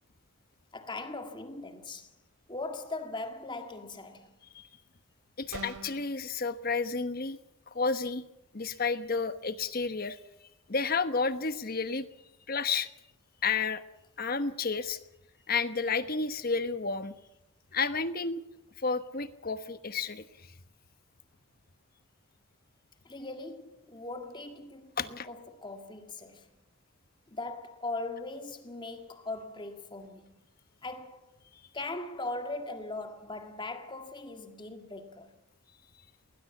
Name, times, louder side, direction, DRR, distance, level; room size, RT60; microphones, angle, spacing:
voice 1, 0.7-2.1 2.5-4.3 23.1-26.5 27.3-30.3 30.8-31.3 31.7-35.3, left 2 dB, 20° left, 1.9 m, -40 dB
voice 2, 5.4-7.4 7.7-8.2 8.5-10.2 10.7-12.1 12.5-12.9 13.4-13.8 14.2-15.0 15.5-17.1 17.7-18.4 18.8-20.2 25.0-25.3, left 4 dB, 40° left, 1.1 m, -31 dB
sound 1, 5.5-6.1, right 2 dB, 85° right, 2.6 m, -41 dB
20.0 x 19.5 x 7.2 m
head